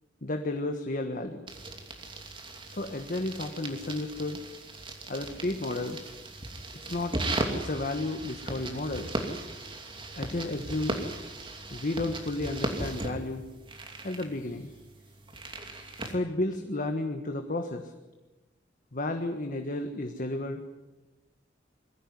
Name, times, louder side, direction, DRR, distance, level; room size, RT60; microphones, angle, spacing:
voice 1, 0.2-1.5 2.7-4.4 5.1-6.0 6.9-7.2 7.5-9.1 10.2-11.0 11.7-13.4 14.0-14.7 15.7-17.9 18.9-20.6, left 2 dB, 50° left, 5 dB, 1.5 m, -32 dB
sound 1, 1.5-16.1, right 2 dB, 30° right, 2.7 m, -37 dB
22.0 x 15.0 x 9.8 m, 1.1 s
head